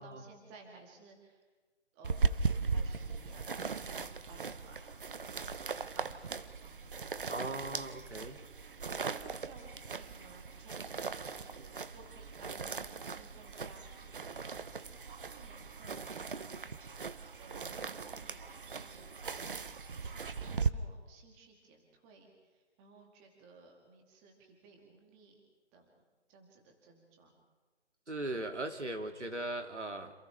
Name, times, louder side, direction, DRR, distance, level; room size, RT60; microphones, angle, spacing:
voice 1, 0.0-1.4 1.9-5.3 5.9-8.0 9.1-14.8 15.3-25.4 25.7-27.4, right 3 dB, 10° right, 1 dB, 2.0 m, -58 dB
sound 1, 2.0-20.7, right 5 dB, 50° right, 0.9 m, -38 dB
voice 2, 7.3-8.4 28.1-30.1, right 2 dB, 85° right, 5 dB, 2.5 m, -38 dB
29.0 x 27.5 x 3.4 m, 1.3 s
figure-of-eight pair, 155°, 34 cm